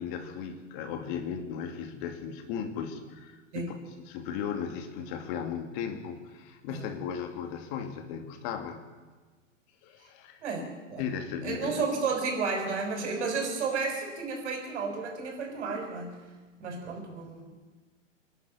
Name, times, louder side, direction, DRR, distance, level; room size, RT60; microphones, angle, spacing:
voice 1, 0.0-8.8 9.8-10.4 11.0-11.8, left 7 dB, 40° left, 6 dB, 2.5 m, -36 dB
voice 2, 10.4-11.0 11.4-16.2 16.6-17.5, right 4 dB, 60° right, 3 dB, 6.5 m, -32 dB
25.0 x 11.5 x 9.5 m, 1.3 s
hypercardioid pair, 115°, 38 cm